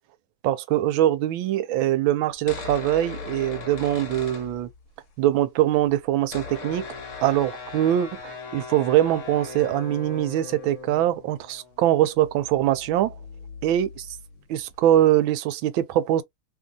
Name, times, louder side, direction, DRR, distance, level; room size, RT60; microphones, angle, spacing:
voice 1, 0.4-4.7 5.2-6.9 7.2-13.1 13.6-14.1 14.5-16.2, right 12 dB, 80° right, 1.4 m, -23 dB
sound 1, 2.3-5.1 5.3-5.4 5.6-15.0, left 4 dB, 45° left, 1.2 m, -39 dB
3.2 x 2.6 x 3.7 m
omnidirectional pair, 2.1 m